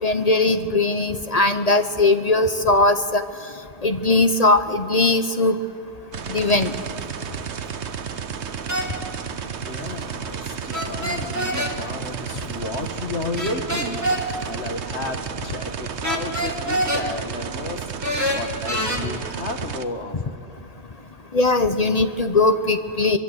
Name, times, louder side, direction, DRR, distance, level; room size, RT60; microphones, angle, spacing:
voice 1, 0.0-3.2 3.8-5.6 6.3-6.7 21.3-23.2, left 2 dB, 35° left, 9 dB, 1.0 m, -19 dB
sound 1, 6.1-19.8, right 7 dB, 80° right, 1.2 m, -32 dB
sound 2, 8.7-8.9 10.7-11.7 13.4-14.2 16.0-17.0 18.0-19.0, equal, 15° right, 2.5 m, -25 dB
voice 2, 9.6-17.8 18.3-20.4, left 2 dB, 80° left, 5 dB, 2.1 m, -32 dB
24.5 x 23.5 x 8.1 m, 2.3 s
omnidirectional pair, 1.1 m